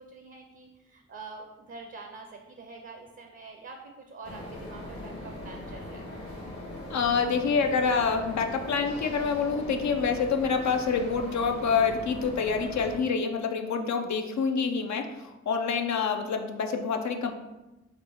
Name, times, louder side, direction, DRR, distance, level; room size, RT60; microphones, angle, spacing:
voice 1, 0.0-6.1, right 4 dB, 40° right, 3 dB, 0.5 m, -46 dB
sound 1, 4.2-13.0, left 1 dB, 50° left, 1.0 m, -40 dB
voice 2, 6.9-17.3, left 5 dB, 70° left, 5 dB, 0.5 m, -27 dB
3.8 x 2.1 x 3.4 m, 1.0 s
cardioid pair, 55°, 29 cm